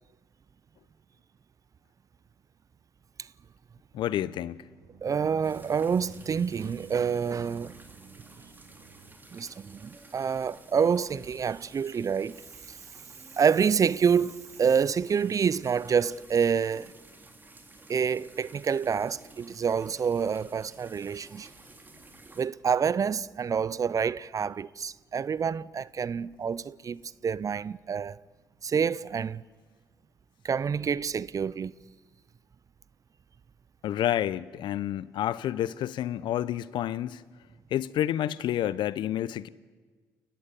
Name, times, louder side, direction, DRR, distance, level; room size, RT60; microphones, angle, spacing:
voice 1, 3.9-4.6 33.8-37.2 37.7-39.5, left 12 dB, 65° left, 0.8 m, -29 dB
sound 1, 4.1-9.2, right 8 dB, 85° right, 2.1 m, -52 dB
voice 2, 5.0-7.7 9.3-12.4 13.4-16.9 17.9-21.5 22.4-28.2 28.6-29.4 30.4-31.7, right 6 dB, 40° right, 0.7 m, -27 dB
sound 2, 5.4-22.5, right 2 dB, 20° right, 3.7 m, -53 dB
29.5 x 14.5 x 9.9 m
hypercardioid pair, 50°, 9 cm